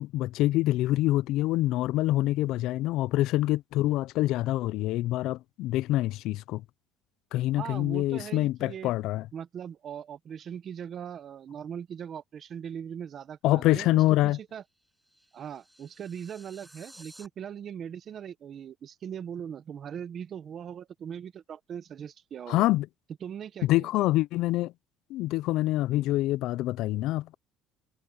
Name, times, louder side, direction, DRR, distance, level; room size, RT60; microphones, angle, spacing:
voice 1, 0.0-6.6 7.3-9.2 13.4-14.4 22.5-22.9 23.6-24.7 25.1-27.3, left 16 dB, 65° left, 0.4 m, -26 dB
voice 2, 7.6-8.9 9.3-13.9 14.2-14.6 15.3-22.7 23.2-24.1, right 8 dB, 40° right, 1.3 m, -40 dB
sound 1, 14.6-17.3, right 1 dB, 5° right, 7.7 m, -55 dB
cardioid pair, 145°, 0 cm